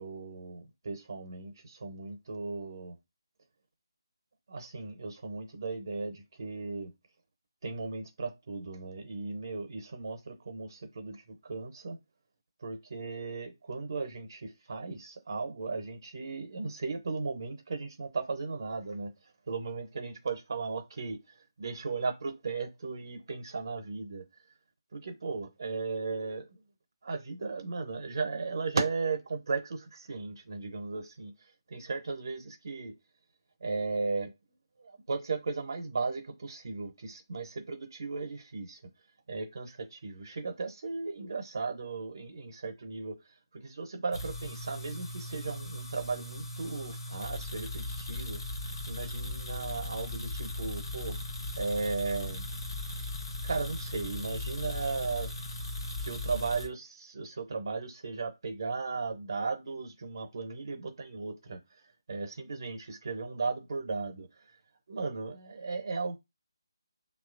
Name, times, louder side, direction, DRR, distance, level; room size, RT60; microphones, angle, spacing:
voice 1, 0.0-2.9 4.5-6.9 7.6-12.0 12.6-24.2 24.9-26.5 27.0-32.9 33.6-34.3 34.8-38.8 39.3-48.4 48.9-51.2 51.6-52.5 53.4-55.3 56.0-61.6 62.1-64.5 64.9-66.2, right 4 dB, 55° right, 0.7 m, -36 dB
sound 1, 44.1-56.7, left 2 dB, 60° left, 0.7 m, -38 dB
3.0 x 2.3 x 2.4 m
figure-of-eight pair, 155°, 3 cm